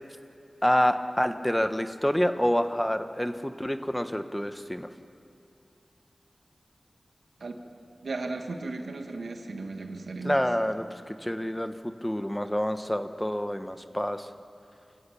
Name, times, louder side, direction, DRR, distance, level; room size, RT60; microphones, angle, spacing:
voice 1, 0.6-4.9 10.2-14.3, equal, 10° left, 9 dB, 1.2 m, -27 dB
voice 2, 8.0-10.4, right 3 dB, 90° right, 4 dB, 1.8 m, -35 dB
28.5 x 14.5 x 8.7 m, 2.6 s
cardioid pair, 40°, 0 cm